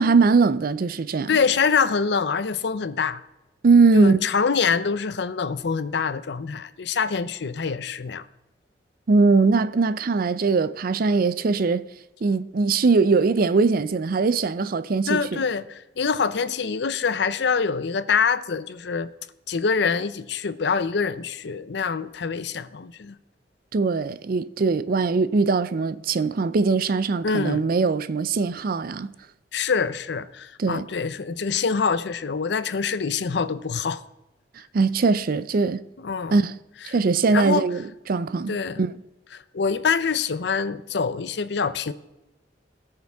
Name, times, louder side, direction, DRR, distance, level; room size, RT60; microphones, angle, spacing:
voice 1, 0.0-1.3 3.6-4.3 9.1-11.8 12.2-15.4 23.7-29.1 30.6-30.8 34.7-35.8 36.3-36.5 36.8-39.0, right 4 dB, 55° right, 0.4 m, -21 dB
voice 2, 1.3-3.2 3.9-8.3 15.1-19.1 19.5-23.2 27.2-27.6 29.5-34.0 36.0-36.4 37.3-37.6 38.5-38.8 39.3-41.9, left 5 dB, 70° left, 0.6 m, -25 dB
19.0 x 6.7 x 3.5 m
head